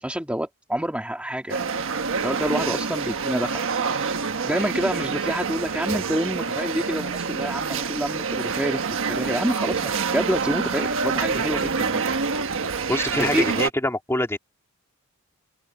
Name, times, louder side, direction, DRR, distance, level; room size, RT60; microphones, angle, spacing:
voice 1, 0.0-1.7 2.2-4.1 4.4-12.0 13.2-13.5, equal, 5° right, 2.1 m, -27 dB
sound 1, 1.5-13.7, right 5 dB, 65° right, 1.4 m, -27 dB
voice 2, 12.9-14.4, left 1 dB, 10° left, 3.5 m, -25 dB
head